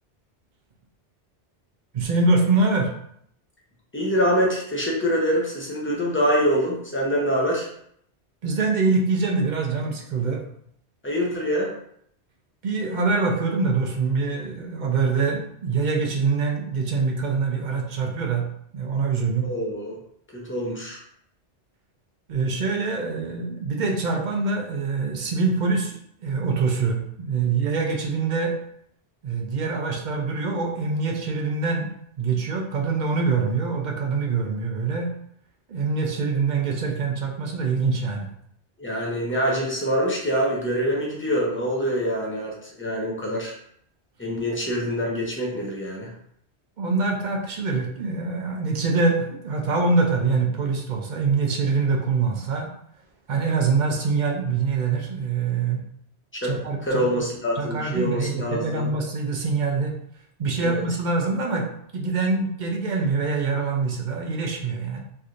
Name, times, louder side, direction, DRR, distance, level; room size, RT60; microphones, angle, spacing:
voice 1, 1.9-2.9 8.4-10.4 12.6-18.5 18.7-19.5 22.3-26.0 26.2-28.6 29.2-35.1 35.7-38.3 46.8-52.7 53.3-55.8 56.4-57.0 57.6-59.9 60.4-61.7 61.9-65.0, right 4 dB, 55° right, 1 dB, 0.5 m, -24 dB
voice 2, 3.9-7.7 11.0-11.7 19.5-20.0 20.3-21.0 38.8-43.5 44.2-46.1 56.3-56.5 56.8-58.9 60.6-60.8, equal, 15° left, -3 dB, 0.5 m, -25 dB
3.2 x 2.7 x 2.4 m, 0.69 s
omnidirectional pair, 1.1 m